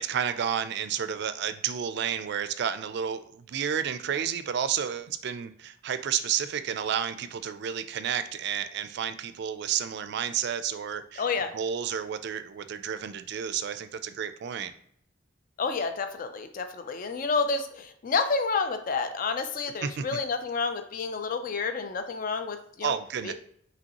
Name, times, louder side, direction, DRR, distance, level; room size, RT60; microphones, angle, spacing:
voice 1, 0.0-11.3 11.5-14.7 19.8-20.2 22.8-23.3, right 8 dB, 60° right, 11 dB, 0.3 m, -31 dB
voice 2, 11.2-11.5 15.6-22.9 23.2-23.3, left 4 dB, 45° left, 8 dB, 0.4 m, -29 dB
5.2 x 3.1 x 2.8 m, 0.65 s
head